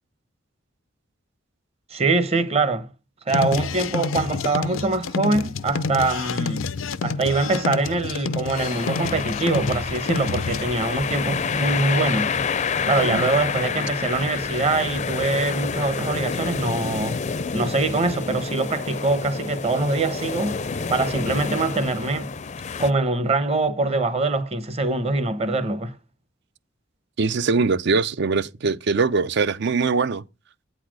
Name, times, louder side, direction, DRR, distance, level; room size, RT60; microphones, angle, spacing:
voice 1, 1.9-2.9 3.3-6.7 7.0-12.3 12.8-17.2 17.5-20.6 20.9-22.3 22.8-25.9, right 3 dB, 30° right, 0.9 m, -23 dB
sound 1, 3.3-10.6, left 4 dB, 85° left, 0.5 m, -28 dB
sound 2, 8.5-22.9, left 5 dB, 35° left, 0.5 m, -28 dB
voice 2, 27.2-30.2, right 4 dB, 60° right, 0.5 m, -22 dB
8.6 x 4.2 x 6.3 m
head